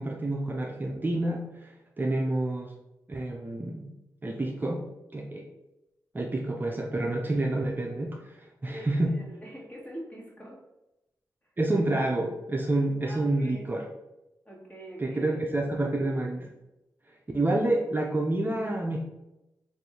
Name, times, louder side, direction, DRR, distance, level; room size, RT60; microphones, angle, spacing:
voice 1, 0.0-2.7 3.1-3.9 4.2-4.8 5.1-5.5 6.1-9.1 11.6-13.8 15.0-16.5 17.3-19.0, right 2 dB, 25° right, 0 dB, 0.6 m, -28 dB
voice 2, 8.7-10.6 13.0-13.7 14.4-15.7, right 1 dB, 20° left, -2 dB, 1.5 m, -44 dB
3.4 x 2.5 x 4.3 m, 0.93 s
cardioid pair, 50°, 7 cm